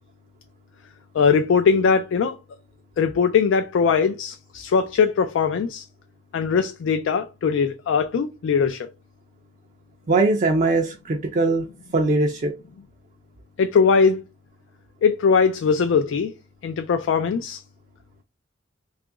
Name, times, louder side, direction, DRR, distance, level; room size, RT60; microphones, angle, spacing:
voice 1, 1.1-2.4 3.0-5.8 6.3-8.9 13.6-14.2 15.0-16.3 16.6-17.6, left 5 dB, 80° left, 0.3 m, -20 dB
voice 2, 10.1-11.6 11.9-12.6, right 3 dB, 40° right, 0.4 m, -21 dB
2.9 x 2.4 x 3.6 m
head